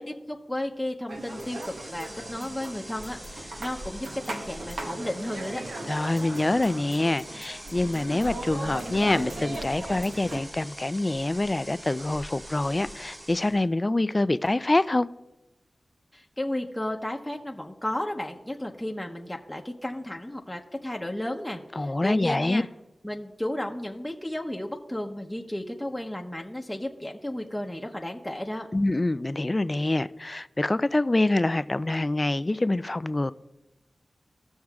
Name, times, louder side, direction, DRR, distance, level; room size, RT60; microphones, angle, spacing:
voice 1, 0.0-5.6 16.1-22.7 23.0-28.7, left 1 dB, 10° left, 0.8 m, -33 dB
sound 1, 1.1-13.6, equal, 35° right, 2.1 m, -43 dB
sound 2, 1.1-10.4, right 2 dB, 90° right, 1.0 m, -38 dB
voice 2, 5.8-15.1 21.8-22.6 28.7-33.3, left 2 dB, 35° left, 0.3 m, -25 dB
16.0 x 6.3 x 2.4 m
cardioid pair, 50°, 0 cm